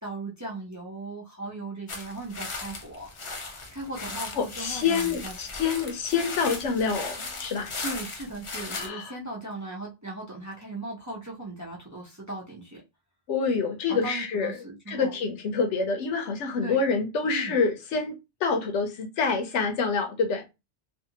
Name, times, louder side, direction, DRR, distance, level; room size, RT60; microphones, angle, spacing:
voice 1, 0.0-3.1 3.3-5.4 7.8-12.8 13.9-15.2 16.6-16.8 17.2-17.5, right 2 dB, 25° right, 0.4 m, -38 dB
sound 1, 1.9-8.9, left 3 dB, 40° left, 0.4 m, -37 dB
voice 2, 4.4-7.7 8.7-9.1 13.3-14.5 14.9-18.2 18.4-20.4, left 5 dB, 90° left, 1.0 m, -27 dB
2.6 x 2.5 x 2.7 m
omnidirectional pair, 1.2 m